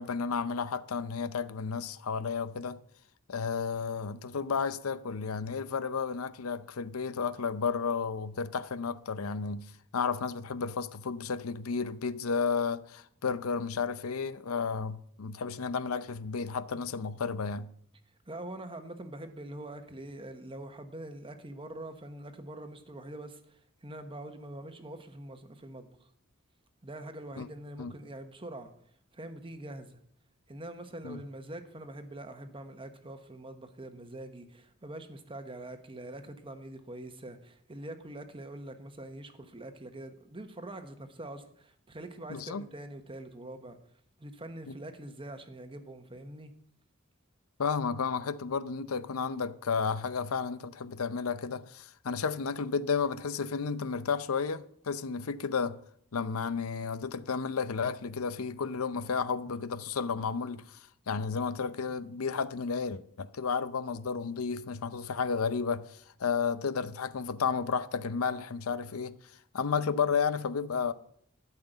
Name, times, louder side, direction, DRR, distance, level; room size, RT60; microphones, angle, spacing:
voice 1, 0.0-2.8 3.3-17.7 27.4-27.5 27.8-27.9 31.0-31.2 42.3-42.7 44.7-44.8 47.6-55.8 56.1-60.8 61.1-69.2 69.5-70.9, left 5 dB, 90° left, 0.6 m, -32 dB
voice 2, 18.3-26.1 26.8-28.7 29.1-30.0 30.5-43.8 44.2-46.5, right 1 dB, 25° right, 1.1 m, -44 dB
13.0 x 5.8 x 8.0 m
head